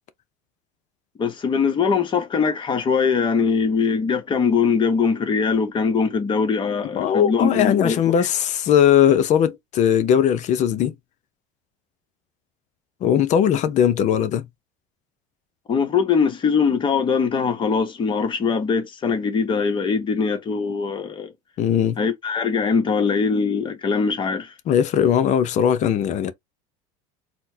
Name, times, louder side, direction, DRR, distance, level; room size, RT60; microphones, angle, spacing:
voice 1, 1.2-8.1 15.7-21.3 22.0-24.5, left 5 dB, 25° left, 1.0 m, -22 dB
voice 2, 6.9-10.9 13.0-14.5 21.6-22.0 24.7-26.3, left 9 dB, 40° left, 0.6 m, -19 dB
4.2 x 2.1 x 2.7 m
supercardioid pair, 120°, 18 cm